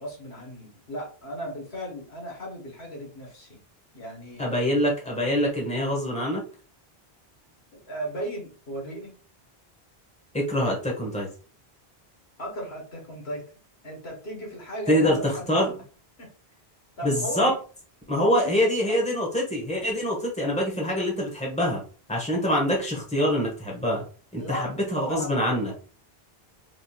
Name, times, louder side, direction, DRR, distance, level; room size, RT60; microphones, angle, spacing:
voice 1, 0.0-3.6 3.9-4.4 7.7-9.2 12.4-13.5 13.8-15.7 16.2-16.3 17.0-17.6 18.1-19.0 24.4-25.7, equal, 85° left, 0 dB, 1.9 m, -36 dB
voice 2, 4.4-6.4 10.3-11.3 14.9-15.7 17.0-17.5 18.1-21.8 22.1-24.0 24.3-25.7, equal, 5° left, -2 dB, 1.6 m, -25 dB
4.8 x 3.9 x 2.4 m, 0.38 s
omnidirectional pair, 1.0 m